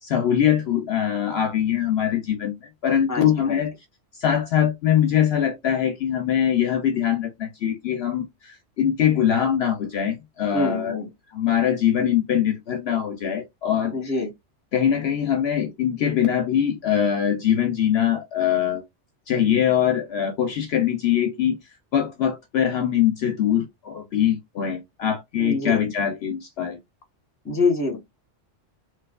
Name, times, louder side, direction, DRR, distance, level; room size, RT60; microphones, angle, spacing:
voice 1, 0.0-2.6 2.8-3.7 4.2-11.0 11.3-13.9 14.7-18.8 19.3-21.6 21.9-26.8, left 9 dB, 65° left, 0.8 m, -22 dB
voice 2, 3.1-3.6 10.5-11.1 13.9-14.3 25.4-25.8 27.4-28.0, left 3 dB, 15° left, 1.0 m, -25 dB
3.2 x 2.9 x 2.3 m
omnidirectional pair, 1.2 m